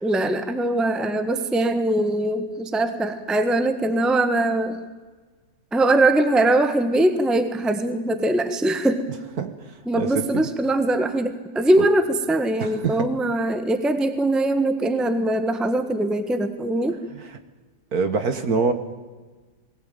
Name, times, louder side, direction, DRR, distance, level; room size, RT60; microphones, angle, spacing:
voice 1, 0.0-4.8 5.7-9.1 9.9-17.0, right 1 dB, ahead, 9 dB, 1.2 m, -22 dB
voice 2, 10.0-10.4 12.6-13.1 17.1-17.2 17.9-18.7, right 4 dB, 55° right, 8 dB, 1.9 m, -24 dB
21.5 x 17.5 x 9.1 m, 1.3 s
omnidirectional pair, 2.1 m